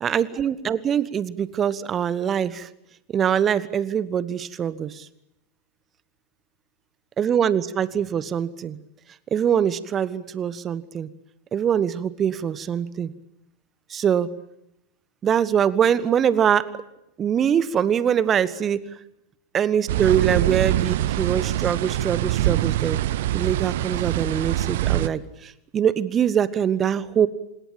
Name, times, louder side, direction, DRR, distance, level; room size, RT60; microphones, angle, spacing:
voice 1, 0.0-2.7 3.1-5.1 7.2-8.8 9.3-11.1 11.5-13.1 13.9-14.3 15.2-16.7 17.2-18.9 19.5-23.0 23.3-27.3, right 8 dB, 25° right, 18 dB, 1.3 m, -23 dB
sound 1, 19.9-25.1, right 14 dB, 55° right, 0.9 m, -24 dB
26.0 x 21.0 x 8.7 m, 0.81 s
figure-of-eight pair, 90°, 0 cm